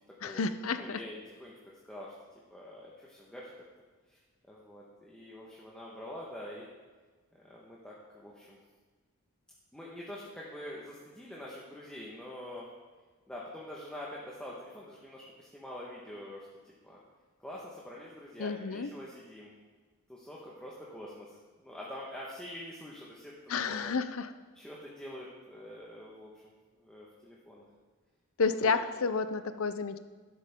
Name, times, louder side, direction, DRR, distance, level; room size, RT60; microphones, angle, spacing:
voice 1, 0.2-1.0 18.4-18.9 23.5-24.3 28.4-30.0, left 4 dB, 65° left, 11 dB, 0.6 m, -31 dB
voice 2, 0.7-1.5 1.8-2.1 2.5-3.5 4.1-4.2 4.5-6.7 7.3-8.6 9.7-12.7 13.3-17.0 17.4-19.5 20.1-23.8 24.5-27.6 28.6-28.8, left 1 dB, 5° left, -5 dB, 1.4 m, -45 dB
12.5 x 11.0 x 3.7 m, 1.4 s
head